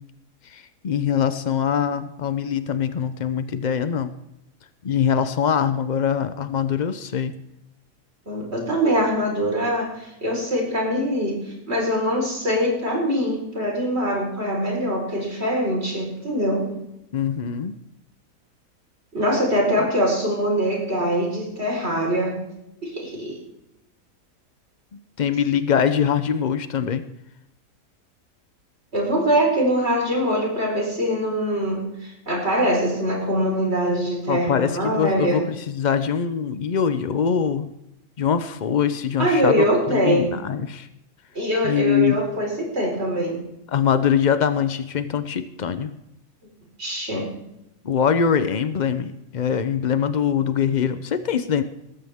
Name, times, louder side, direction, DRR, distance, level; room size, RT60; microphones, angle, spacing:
voice 1, 0.5-4.1 4.8-7.4 17.1-17.7 24.9-27.1 34.3-37.7 38.2-40.9 41.6-42.2 43.7-45.9 47.8-51.6, left 7 dB, 80° left, 11 dB, 0.4 m, -23 dB
voice 2, 8.3-16.7 19.1-22.4 22.8-23.4 28.9-35.4 39.2-40.3 41.3-43.4 46.8-47.3, equal, 40° right, -1 dB, 4.7 m, -23 dB
19.5 x 14.0 x 3.6 m, 0.85 s
omnidirectional pair, 1.7 m